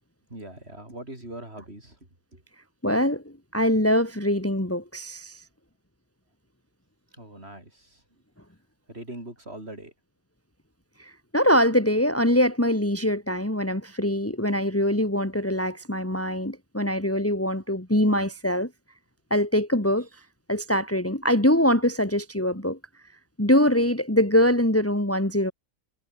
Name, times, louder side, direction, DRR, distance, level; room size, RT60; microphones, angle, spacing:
voice 1, 0.3-2.0 2.3-2.4 7.1-8.0 8.9-9.9, right 1 dB, 35° right, 6.9 m, -41 dB
voice 2, 2.8-5.4 11.0-18.7 19.3-20.1 20.5-22.8 23.4-25.5, equal, 10° left, 2.9 m, -23 dB
omnidirectional pair, 1.8 m